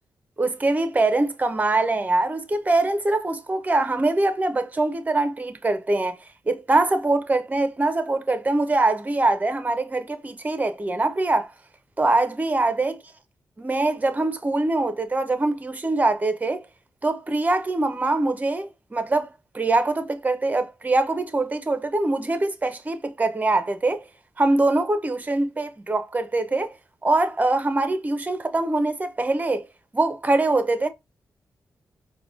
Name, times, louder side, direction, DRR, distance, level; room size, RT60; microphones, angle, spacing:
voice 1, 0.4-6.2 6.5-11.5 12.0-13.0 13.6-16.7 17.0-19.3 19.5-24.0 24.4-26.7 27.0-29.7 29.9-30.9, right 2 dB, 25° right, 0.6 m, -23 dB
4.6 x 2.2 x 2.4 m
cardioid pair, 75°, 7 cm